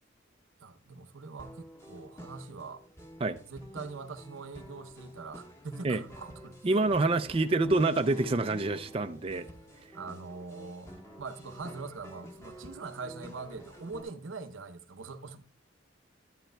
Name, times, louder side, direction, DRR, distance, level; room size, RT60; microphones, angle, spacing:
voice 1, 0.6-2.8 3.5-7.0 9.9-10.9 11.2-15.4, right 4 dB, 90° right, 0.7 m, -43 dB
sound 1, 1.4-14.0, equal, 15° left, 1.3 m, -48 dB
voice 2, 6.6-9.5, right 2 dB, 30° right, 0.4 m, -27 dB
11.5 x 10.0 x 2.2 m
head